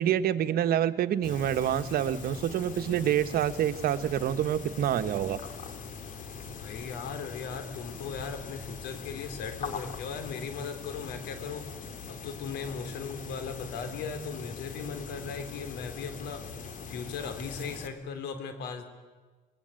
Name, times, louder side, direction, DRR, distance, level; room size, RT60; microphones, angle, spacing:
voice 1, 0.0-5.4, right 10 dB, 65° right, 11 dB, 1.3 m, -27 dB
sound 1, 1.2-17.9, left 5 dB, 50° left, 2.6 m, -42 dB
voice 2, 6.5-11.6 12.1-16.4 16.9-18.8, left 5 dB, 80° left, 8 dB, 3.7 m, -38 dB
26.5 x 20.5 x 9.1 m, 1.4 s
cardioid pair, 110°, 17 cm